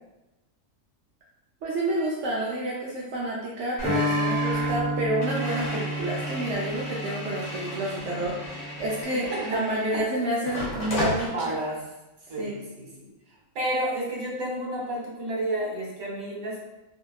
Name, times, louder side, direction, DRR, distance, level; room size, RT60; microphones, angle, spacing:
voice 1, 1.6-11.5 12.4-12.6, right 1 dB, 65° right, -5 dB, 0.8 m, -29 dB
sound 1, 3.8-10.0 10.5-11.3, left 2 dB, 70° left, 1.2 m, -34 dB
sound 2, 3.8-9.0, right 1 dB, ahead, 0.3 m, -31 dB
voice 2, 9.3-9.6 9.9-10.0 11.2-11.8 12.3-13.1 13.5-16.7, right 1 dB, 85° right, -3 dB, 1.3 m, -31 dB
2.9 x 2.7 x 2.3 m, 1.0 s
omnidirectional pair, 1.4 m